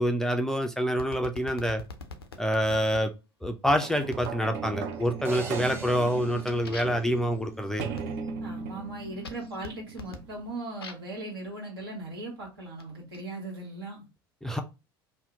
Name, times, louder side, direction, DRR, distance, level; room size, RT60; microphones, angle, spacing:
voice 1, 0.0-1.8 2.4-3.1 3.4-7.9 14.4-14.6, equal, 5° left, 0.4 m, -27 dB
sound 1, 1.0-3.0 4.1-4.5 4.9-5.4 5.8-11.2 12.0-13.2, left 4 dB, 85° left, 0.4 m, -45 dB
sound 2, 3.8-10.5 11.2-11.3, right 5 dB, 55° right, 0.5 m, -38 dB
sound 3, 5.2-7.6, right 3 dB, 20° right, 0.8 m, -42 dB
voice 2, 8.4-14.0, right 2 dB, 75° right, 1.3 m, -38 dB
2.7 x 2.0 x 3.6 m
figure-of-eight pair, 70°, 12 cm